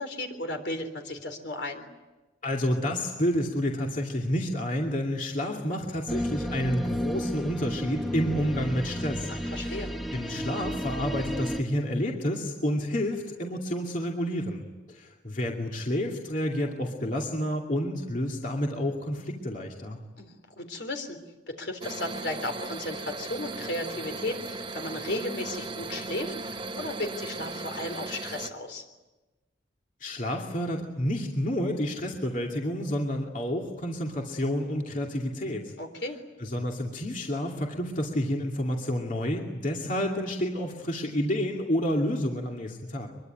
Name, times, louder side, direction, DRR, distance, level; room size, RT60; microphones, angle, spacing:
voice 1, 0.0-1.8 9.3-9.9 20.2-21.2 21.5-28.8 35.8-36.2, left 1 dB, 70° left, 6 dB, 3.7 m, -35 dB
voice 2, 2.4-9.8 10.1-14.6 14.9-20.0 30.0-35.7 36.4-43.1, equal, 45° left, 0 dB, 2.5 m, -29 dB
sound 1, 6.1-11.6, equal, ahead, 1.1 m, -32 dB
sound 2, 21.8-28.5, right 3 dB, 25° right, 1.1 m, -37 dB
24.5 x 22.5 x 9.4 m, 1.1 s
head